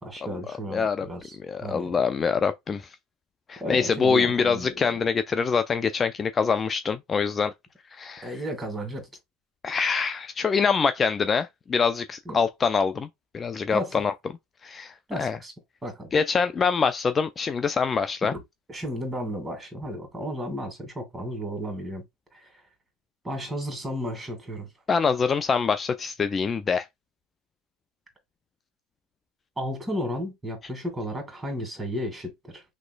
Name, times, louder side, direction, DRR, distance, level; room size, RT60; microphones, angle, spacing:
voice 1, 0.0-1.9 3.6-4.9 8.2-9.1 12.3-12.4 13.7-14.0 15.1-15.5 15.8-16.1 18.2-18.4 18.7-22.1 22.3-22.5 23.2-24.7 29.6-32.6, equal, 15° right, 2.3 m, -33 dB
voice 2, 0.7-1.1 1.5-2.8 3.5-7.5 8.0-8.3 9.6-13.1 13.3-14.1 14.6-14.9 15.2-15.4 16.1-18.3 24.9-26.8, left 5 dB, 30° left, 0.5 m, -24 dB
6.0 x 3.1 x 2.3 m
figure-of-eight pair, 70°, 0 cm